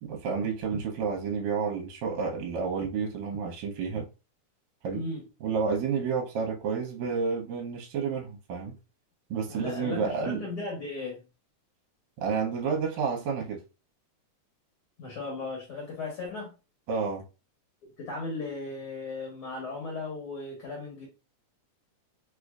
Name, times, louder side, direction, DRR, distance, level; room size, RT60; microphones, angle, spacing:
voice 1, 0.0-4.0 4.8-5.0 5.4-8.8 9.3-10.4 12.2-13.6 16.9-17.2, right 5 dB, 75° right, 1.9 m, -30 dB
voice 2, 4.9-5.3 9.5-11.2 15.0-16.5 18.0-21.1, left 3 dB, 60° left, 1.5 m, -36 dB
4.7 x 2.5 x 2.3 m
omnidirectional pair, 3.5 m